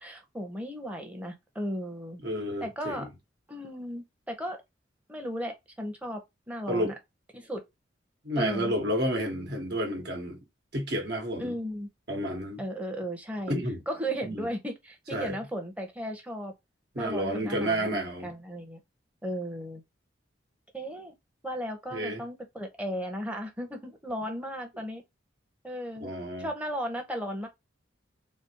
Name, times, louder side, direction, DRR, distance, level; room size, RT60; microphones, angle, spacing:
voice 1, 0.0-2.2 2.6-3.1 3.5-4.6 5.1-6.9 7.3-7.6 8.4-8.7 11.4-11.9 12.6-13.5 13.9-16.5 16.9-18.8 19.2-19.8 20.7-21.1 21.4-25.0 25.6-26.1 26.4-27.5, equal, 5° right, 0.8 m, -35 dB
voice 2, 2.2-3.1 6.7-7.0 8.2-10.4 10.7-11.5 12.1-12.6 13.5-13.8 14.2-14.5 15.1-15.4 16.9-18.3 21.9-22.2 26.0-26.5, equal, 55° right, 1.3 m, -30 dB
4.2 x 2.0 x 2.8 m
head